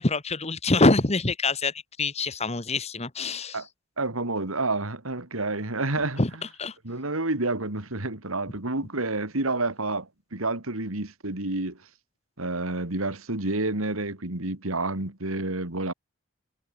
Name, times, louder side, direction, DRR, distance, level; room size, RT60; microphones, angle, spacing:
voice 1, 0.0-3.6 6.2-6.3 6.6-6.7, left 2 dB, 30° left, 1.6 m, -25 dB
voice 2, 4.0-6.2 6.8-11.9 12.4-15.9, right 2 dB, 85° right, 3.1 m, -29 dB
head